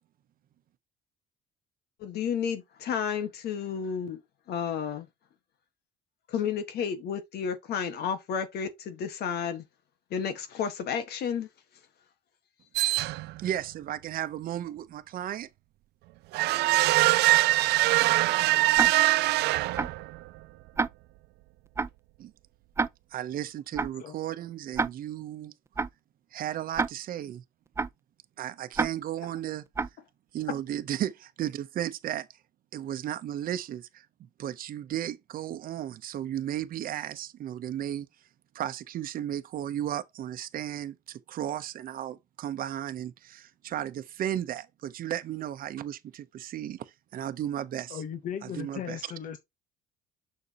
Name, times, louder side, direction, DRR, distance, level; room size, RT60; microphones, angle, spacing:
voice 1, 2.0-4.2 4.5-5.1 6.3-9.6 10.1-11.5 18.5-18.9, left 7 dB, 70° left, 1.7 m, -32 dB
sound 1, 12.7-13.5 16.3-20.2, right 19 dB, 80° right, 0.4 m, -23 dB
voice 2, 13.4-15.5 22.2-22.3 23.1-25.5 26.3-27.4 28.4-29.6 30.3-32.3 32.7-34.0 34.4-38.1 38.5-48.0 48.6-49.0, right 11 dB, 60° right, 0.9 m, -34 dB
Tick-tock, 18.8-18.9 19.8-19.9 20.8-20.9 21.8-21.9 22.8-22.9 23.8-23.9 24.8-24.9 25.8-25.9 26.8-26.9 27.8-27.9 28.8-28.9 29.8-29.9, right 4 dB, 15° right, 0.4 m, -27 dB
voice 3, 47.9-49.4, left 8 dB, 50° left, 1.1 m, -37 dB
6.8 x 6.4 x 3.0 m
cardioid pair, 110°, 17 cm